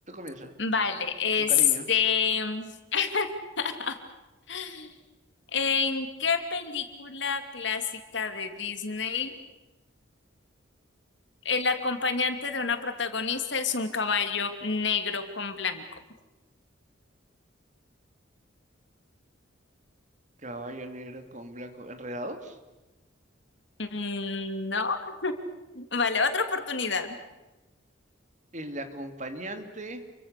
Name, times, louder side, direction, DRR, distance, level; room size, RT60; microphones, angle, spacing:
voice 1, 0.1-0.5 1.4-1.9 20.4-22.6 28.5-30.0, right 1 dB, 35° right, 7 dB, 2.7 m, -38 dB
voice 2, 0.6-1.5 1.9-3.3 3.6-4.0 4.5-4.9 5.5-7.8 8.1-9.3 11.4-15.8 23.8-25.3 25.7-27.1, left 5 dB, 65° left, 7 dB, 2.8 m, -28 dB
29.0 x 24.0 x 6.8 m, 1.1 s
head